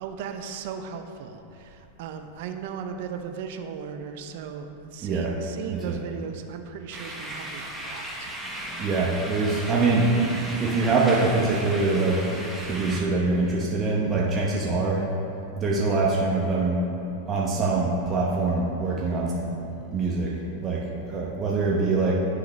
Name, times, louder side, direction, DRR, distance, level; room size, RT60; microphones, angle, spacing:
voice 1, 0.0-8.4, right 7 dB, 65° right, 6 dB, 0.5 m, -37 dB
sound 1, 6.9-13.0, right 1 dB, 5° right, 1.1 m, -36 dB
voice 2, 8.8-12.2 12.6-15.0 15.5-16.8 17.3-19.6 19.9-20.3 20.6-22.1, right 3 dB, 30° right, -4 dB, 0.9 m, -24 dB
10.5 x 3.8 x 3.2 m, 2.9 s
hypercardioid pair, 115°, 0 cm